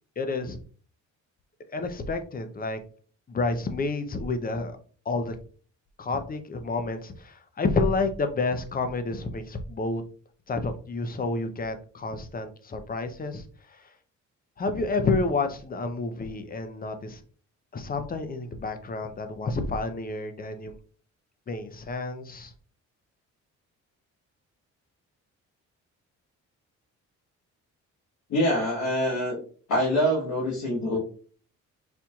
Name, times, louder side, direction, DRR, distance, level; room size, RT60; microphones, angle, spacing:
voice 1, 0.2-0.6 1.7-2.8 3.3-4.8 5.1-5.3 6.0-10.0 10.5-13.4 13.7-13.9 14.6-17.2 17.7-20.7 21.5-22.5, left 3 dB, 30° left, 8 dB, 0.6 m, -29 dB
voice 2, 28.3-29.4 29.7-31.0, equal, 75° left, -6 dB, 1.3 m, -25 dB
4.3 x 2.8 x 2.3 m, 0.42 s
cardioid pair, 90°, 30 cm